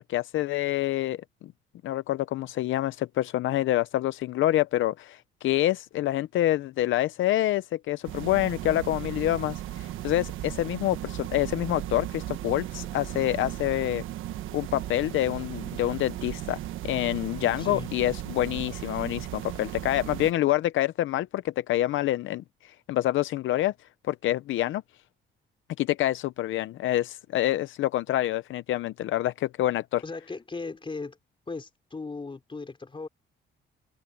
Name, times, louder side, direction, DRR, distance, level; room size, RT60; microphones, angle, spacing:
voice 1, 0.0-1.5 1.8-14.0 14.5-16.6 16.8-23.7 24.1-24.8 25.8-30.0, left 14 dB, 80° left, 0.7 m, -27 dB
Room Tone Apartment Small Bachelor, 8.0-20.3, right 13 dB, 85° right, 1.2 m, -36 dB
voice 2, 17.6-17.9 30.0-31.2 31.5-33.1, left 3 dB, 25° left, 3.8 m, -37 dB
cardioid pair, 90°, 20 cm